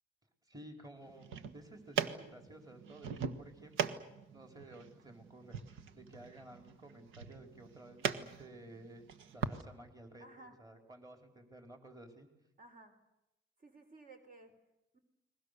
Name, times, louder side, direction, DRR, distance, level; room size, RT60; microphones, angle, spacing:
voice 1, 0.5-1.3 1.5-9.1 9.3-12.3, right 1 dB, 20° right, 4 dB, 4.6 m, -54 dB
sound 1, 1.1-9.6, right 7 dB, 85° right, 1.5 m, -41 dB
voice 2, 10.2-10.6 12.6-13.0 13.6-14.5 14.9-15.0, right 2 dB, 45° right, 5 dB, 3.9 m, -56 dB
30.0 x 21.5 x 6.9 m, 0.91 s
cardioid pair, 90°, 20 cm